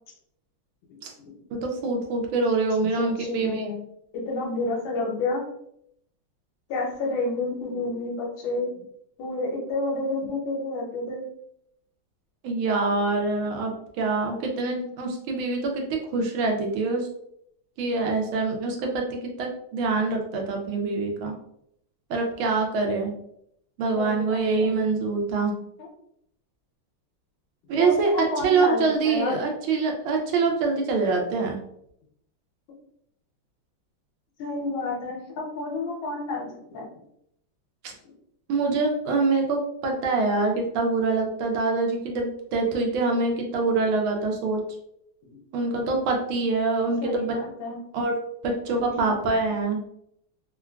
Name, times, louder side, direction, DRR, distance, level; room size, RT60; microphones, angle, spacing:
voice 1, 1.5-3.6 12.4-17.1 17.8-21.3 22.1-23.1 23.8-25.5 27.7-28.1 28.4-31.6 37.8-37.9 38.5-44.6 45.5-47.3 47.9-48.1 48.4-49.8, right 3 dB, 75° right, 2 dB, 1.3 m, -25 dB
voice 2, 3.0-3.8 4.1-5.4 6.7-8.8 9.2-11.2 13.6-13.7 24.0-24.8 25.8-25.9 27.8-29.4 34.4-36.9 47.0-47.8 48.9-49.1, left 2 dB, 75° left, -1 dB, 1.5 m, -30 dB
3.6 x 2.3 x 2.2 m, 0.74 s
omnidirectional pair, 2.3 m